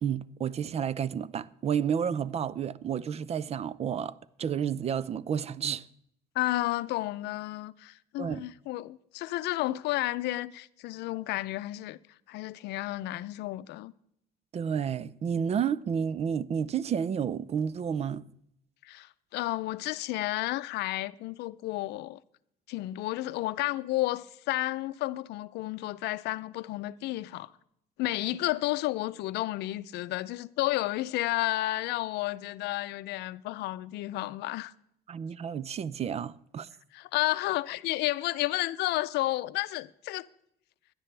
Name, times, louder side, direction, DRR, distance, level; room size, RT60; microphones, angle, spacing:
voice 1, 0.0-5.9 8.2-8.5 14.5-18.2 35.1-36.7, right 8 dB, 40° right, 0.5 m, -31 dB
voice 2, 6.4-12.0 12.3-13.9 18.8-22.2 22.7-27.5 28.0-34.7 36.9-40.2, left 17 dB, 85° left, 0.5 m, -32 dB
17.0 x 11.0 x 3.3 m
cardioid pair, 110°, 17 cm